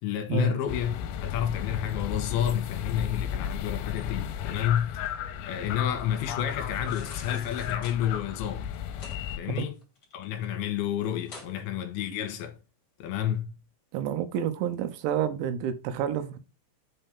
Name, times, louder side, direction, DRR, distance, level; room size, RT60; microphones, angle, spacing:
voice 1, 0.0-0.9 1.2-8.7 9.4-9.8 10.1-12.6 13.0-13.5, left 10 dB, 70° left, 2.8 m, -30 dB
sound 1, 0.7-9.4, left 9 dB, 85° left, 2.9 m, -34 dB
sound 2, 6.7-8.0 8.7-9.2 9.6-10.4 10.8-10.9 11.2-11.5 12.0-12.1, left 3 dB, 30° left, 2.2 m, -48 dB
voice 2, 13.9-16.4, right 9 dB, 80° right, 3.0 m, -29 dB
7.9 x 4.5 x 3.6 m
omnidirectional pair, 5.5 m